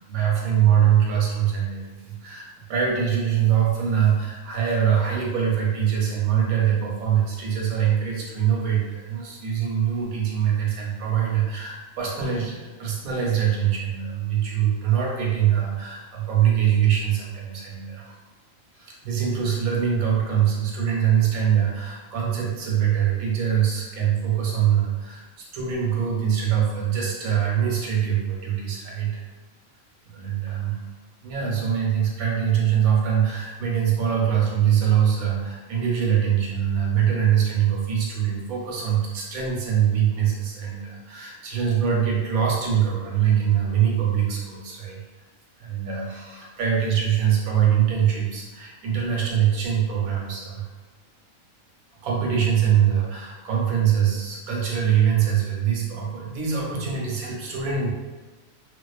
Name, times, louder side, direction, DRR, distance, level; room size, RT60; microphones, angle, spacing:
voice 1, 0.0-18.2 18.7-29.2 30.1-30.8 31.2-45.0 45.6-50.7 52.0-57.9, right 9 dB, 85° right, -2 dB, 1.1 m, -23 dB
2.4 x 2.3 x 2.3 m, 1.2 s
omnidirectional pair, 1.5 m